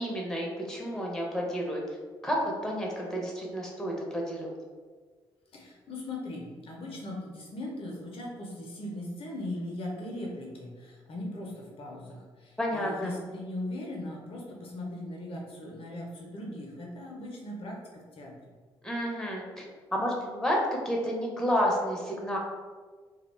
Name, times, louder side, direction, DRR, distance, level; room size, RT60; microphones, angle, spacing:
voice 1, 0.0-1.8 2.2-2.4 2.6-4.5 12.6-13.1 18.8-19.6 19.9-20.6 20.8-22.4, equal, 5° left, -2 dB, 0.7 m, -30 dB
voice 2, 5.5-18.3, left 1 dB, 45° left, -1 dB, 0.6 m, -39 dB
2.3 x 2.1 x 3.2 m, 1.5 s
figure-of-eight pair, 45°, 13 cm